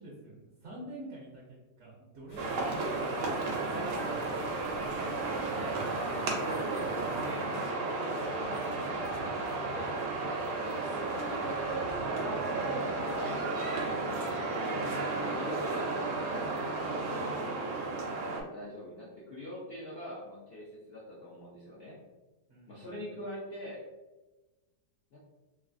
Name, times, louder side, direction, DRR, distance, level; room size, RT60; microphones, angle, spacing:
voice 1, 0.0-4.6 22.5-23.0, right 1 dB, 60° right, -4 dB, 0.8 m, -47 dB
sound 1, 2.3-7.6, left 1 dB, 55° left, 1.0 m, -51 dB
sound 2, 2.4-18.4, right 3 dB, 85° right, 1.2 m, -33 dB
voice 2, 6.2-10.0 10.4-13.4 13.8-15.9 16.4-17.7 18.0-22.0 22.7-23.8 25.1-25.2, left 1 dB, 70° left, -7 dB, 0.5 m, -44 dB
3.1 x 2.4 x 2.5 m, 1.1 s
omnidirectional pair, 1.8 m